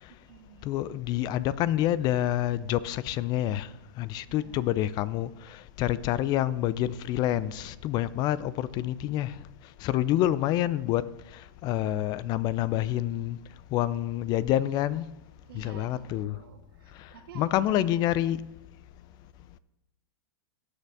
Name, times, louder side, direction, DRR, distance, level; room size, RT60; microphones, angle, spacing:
voice 1, 0.1-0.7 4.3-4.7 15.5-17.7, right 8 dB, 75° right, 2.0 m, -50 dB
voice 2, 0.6-3.7 4.0-9.3 9.8-11.0 11.6-13.4 13.7-15.1 15.5-16.4 17.3-18.4, left 13 dB, 35° left, 0.4 m, -27 dB
17.5 x 6.6 x 3.5 m
hypercardioid pair, 125°, 12 cm